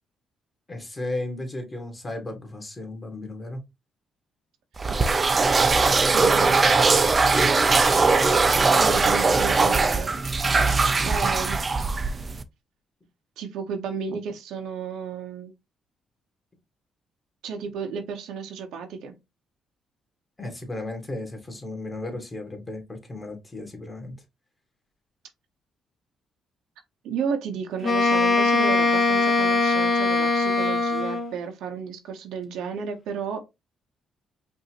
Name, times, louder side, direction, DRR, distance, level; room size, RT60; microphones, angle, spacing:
voice 1, 0.7-3.6 7.4-7.6 11.1-11.4 20.4-24.1, left 2 dB, 25° left, 1.7 m, -35 dB
sound 1, 4.8-12.4, right 4 dB, 30° right, 0.5 m, -20 dB
voice 2, 5.9-6.9 8.8-10.2 11.0-11.6 13.4-15.5 17.4-19.1 27.0-33.4, right 6 dB, 85° right, 1.0 m, -33 dB
Wind instrument woodwind instrument, 27.8-31.4, left 3 dB, 40° left, 1.1 m, -21 dB
5.3 x 2.8 x 2.9 m
cardioid pair, 90°, 0 cm